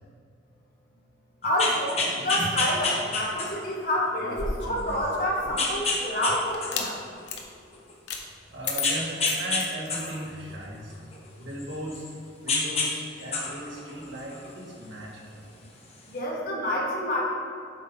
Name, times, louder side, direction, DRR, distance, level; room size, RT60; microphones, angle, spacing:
voice 1, 1.4-6.9 16.1-17.3, left 1 dB, 50° left, -3 dB, 1.5 m, -28 dB
sound 1, 1.4-3.7 4.3-4.4 5.6-6.3 6.6-7.9 8.8-9.6 9.9-12.1 12.5-12.9 13.2-14.6 15.6-15.7, left 3 dB, 35° left, 1.0 m, -28 dB
sound 2, 4.2-5.8 6.5-6.9 7.3-7.4 8.1-8.2 8.6-10.2, left 4 dB, 70° left, 0.8 m, -34 dB
voice 2, 8.5-11.0 11.4-12.1 12.4-15.4, equal, 85° right, -4 dB, 1.7 m, -37 dB
7.8 x 3.7 x 5.2 m, 2.5 s
head